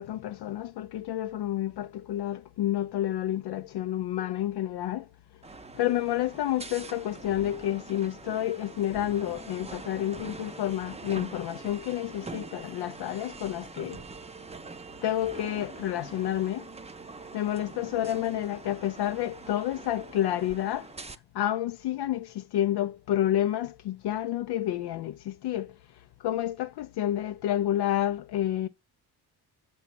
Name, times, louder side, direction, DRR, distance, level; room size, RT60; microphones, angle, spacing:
voice 1, 0.0-5.1 5.7-14.0 15.0-16.7 17.3-20.9 21.3-28.7, left 12 dB, 75° left, 0.5 m, -29 dB
sound 1, 5.4-21.2, right 4 dB, 15° right, 0.5 m, -44 dB
7.1 x 4.1 x 5.8 m
cardioid pair, 105°, 41 cm